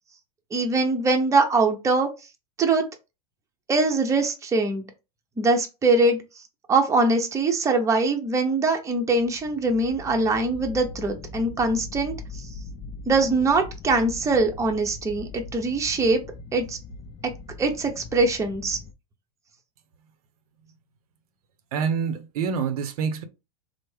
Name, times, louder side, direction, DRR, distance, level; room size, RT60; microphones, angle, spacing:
voice 1, 0.5-2.1 2.6-2.8 3.7-4.8 5.4-6.2 6.7-12.1 13.1-16.2 16.5-16.8 17.6-18.8, right 3 dB, 15° right, 0.7 m, -22 dB
sound 1, 9.0-18.9, left 3 dB, 30° left, 0.4 m, -41 dB
voice 2, 21.7-23.2, right 6 dB, 70° right, 0.6 m, -26 dB
3.4 x 2.0 x 3.2 m
hypercardioid pair, 110°, 20 cm